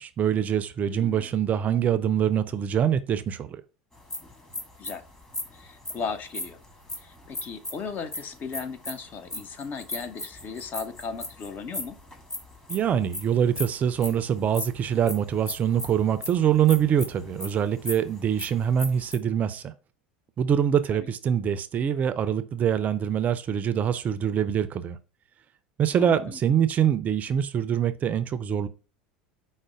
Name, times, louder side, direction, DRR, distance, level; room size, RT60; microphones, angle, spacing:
voice 1, 0.0-3.6 12.7-19.7 20.4-25.0 25.8-28.7, right 9 dB, 35° right, 0.4 m, -24 dB
voice 2, 0.8-1.3 4.8-5.0 5.5-6.6 7.0-12.0 20.9-21.1 26.0-26.4, left 5 dB, 40° left, 0.6 m, -37 dB
sound 1, 3.9-19.2, left 2 dB, 15° left, 1.4 m, -38 dB
5.0 x 2.1 x 4.8 m
hypercardioid pair, 80°, 4 cm